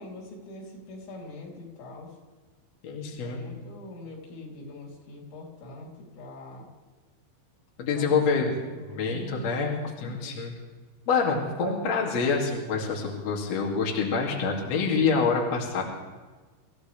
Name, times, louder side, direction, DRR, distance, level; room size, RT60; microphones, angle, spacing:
voice 1, 0.0-2.2 3.2-6.7 7.9-10.4, left 2 dB, 65° left, -2 dB, 5.6 m, -43 dB
voice 2, 2.8-3.4 7.8-8.6 8.9-9.7 10.0-10.6 11.1-15.8, left 5 dB, 40° left, -2 dB, 3.0 m, -26 dB
26.5 x 15.0 x 3.4 m, 1.3 s
omnidirectional pair, 5.7 m